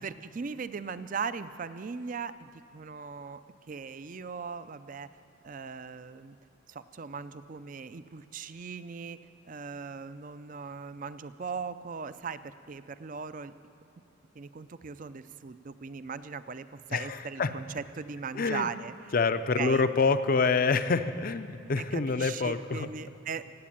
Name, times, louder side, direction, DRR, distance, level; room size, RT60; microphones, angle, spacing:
voice 1, 0.0-3.4 3.7-5.1 5.4-6.4 6.7-9.2 9.5-13.5 14.3-18.9 19.6-19.8 21.8-23.4, right 5 dB, 40° right, 13 dB, 0.4 m, -39 dB
voice 2, 16.9-17.5 18.3-18.7 19.1-22.9, left 4 dB, 45° left, 11 dB, 0.5 m, -27 dB
17.5 x 8.4 x 8.7 m, 2.6 s
head